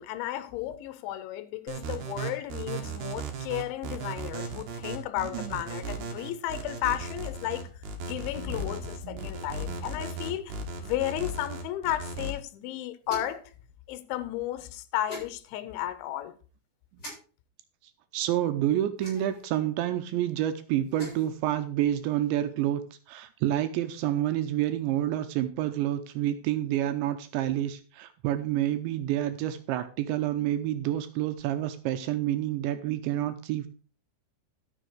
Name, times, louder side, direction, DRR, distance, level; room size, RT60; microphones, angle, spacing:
voice 1, 0.0-7.7 8.0-13.4 13.9-16.3, left 13 dB, 80° left, 3.1 m, -33 dB
sound 1, 1.7-12.3, right 3 dB, 60° right, 2.4 m, -36 dB
voice 2, 5.2-5.6 8.4-8.7 9.0-9.3 9.6-9.8 16.9-17.0 18.1-22.8 23.1-33.7, right 12 dB, 80° right, 2.8 m, -29 dB
sound 2, 13.0-13.5 15.1-15.3 17.0-17.1 19.0-19.4 20.8-21.3, left 1 dB, 20° left, 6.6 m, -42 dB
13.0 x 6.6 x 4.7 m
omnidirectional pair, 5.7 m